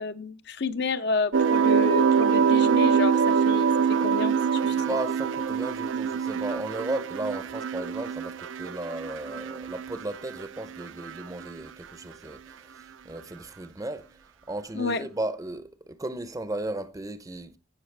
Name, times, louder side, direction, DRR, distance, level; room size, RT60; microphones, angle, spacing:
voice 1, 0.0-3.7 4.0-4.8 14.8-15.1, left 3 dB, 60° left, 0.6 m, -30 dB
sound 1, 1.3-10.5 10.8-11.4, right 6 dB, 80° right, 0.5 m, -24 dB
voice 2, 4.6-14.1 14.5-17.6, right 2 dB, 20° right, 0.6 m, -35 dB
14.5 x 5.7 x 3.3 m
head